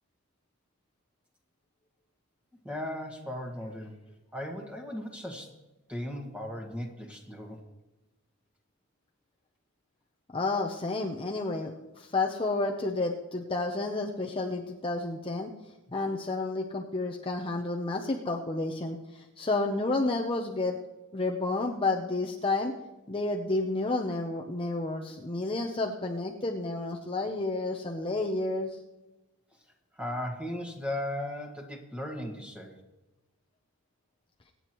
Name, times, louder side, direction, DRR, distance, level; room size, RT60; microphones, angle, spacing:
voice 1, 2.6-3.9 4.3-5.5 5.9-7.6 29.9-32.8, left 1 dB, 5° right, 1 dB, 1.8 m, -37 dB
voice 2, 10.3-15.5 15.9-20.8 21.1-22.7 23.1-28.8, left 2 dB, 25° left, 1 dB, 0.7 m, -30 dB
24.5 x 9.4 x 3.1 m, 1.1 s
head